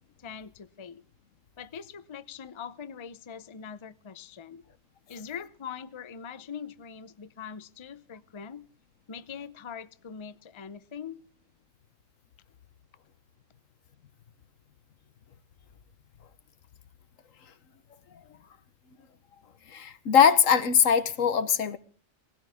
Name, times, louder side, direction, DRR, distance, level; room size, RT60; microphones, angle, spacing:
voice 1, 0.2-1.0 1.6-4.6 5.1-8.7 9.1-11.2, left 7 dB, 30° left, 0.6 m, -42 dB
voice 2, 19.7-21.8, left 7 dB, 85° left, 1.5 m, -21 dB
19.0 x 16.5 x 3.5 m
omnidirectional pair, 1.3 m